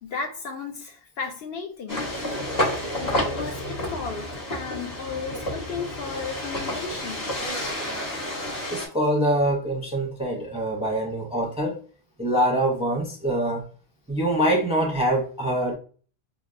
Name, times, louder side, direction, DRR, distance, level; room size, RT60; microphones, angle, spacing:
voice 1, 0.0-2.5 2.9-7.3, left 5 dB, 65° left, 0.7 m, -34 dB
sound 1, 1.9-8.9, left 1 dB, 40° left, 1.3 m, -30 dB
voice 2, 8.7-11.8 12.2-13.6 14.1-15.8, right 1 dB, 5° right, 0.5 m, -24 dB
5.8 x 2.0 x 2.4 m
omnidirectional pair, 1.2 m